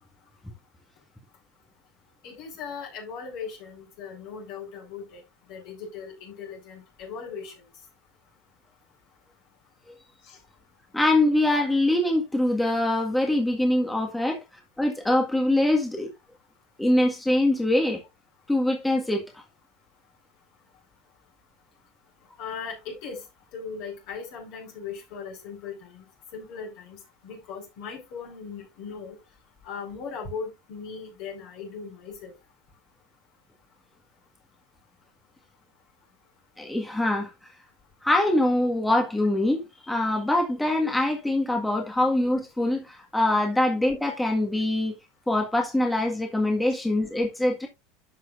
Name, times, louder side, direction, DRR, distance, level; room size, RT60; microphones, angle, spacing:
voice 1, 2.2-5.2 5.5-7.5 10.2-10.4 14.3-14.4 22.4-23.3 23.5-26.0 26.3-29.2 29.6-32.3 46.7-46.8, left 5 dB, 60° left, 4.9 m, -38 dB
voice 2, 10.9-14.4 14.8-16.1 16.8-18.0 18.5-19.2 36.6-37.3 38.0-45.0 45.3-47.7, left 1 dB, 10° left, 1.8 m, -23 dB
12.0 x 6.1 x 2.6 m
hypercardioid pair, 80°, 0 cm